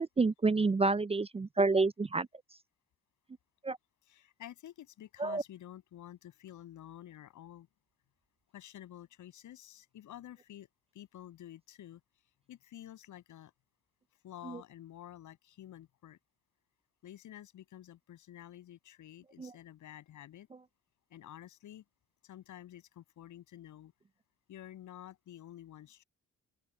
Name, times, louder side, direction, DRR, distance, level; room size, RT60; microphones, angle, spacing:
voice 1, 0.0-2.3 3.6-3.8 5.2-5.4 14.5-14.6 19.4-19.5, right 3 dB, 20° right, 0.6 m, -29 dB
voice 2, 4.0-7.7 8.5-10.7 10.9-12.0 12.5-13.5 14.2-16.2 17.0-20.5 21.1-21.8 22.2-23.9 24.5-26.0, left 12 dB, 75° left, 7.6 m, -50 dB
cardioid pair, 90°, 30 cm